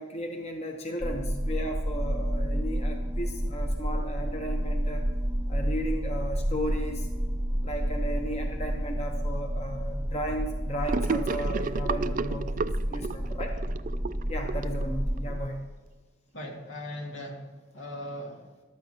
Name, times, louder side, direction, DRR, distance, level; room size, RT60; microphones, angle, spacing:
voice 1, 0.0-5.0 5.5-7.1 7.6-13.6 14.3-15.7, equal, 35° left, 3 dB, 1.0 m, -35 dB
sound 1, 1.0-15.5, equal, 15° right, 0.8 m, -30 dB
Gurgling / Sink (filling or washing), 10.9-15.4, right 4 dB, 45° right, 0.3 m, -32 dB
voice 2, 16.3-18.6, left 1 dB, 80° left, 0 dB, 2.2 m, -39 dB
14.5 x 12.0 x 3.0 m, 1.3 s
head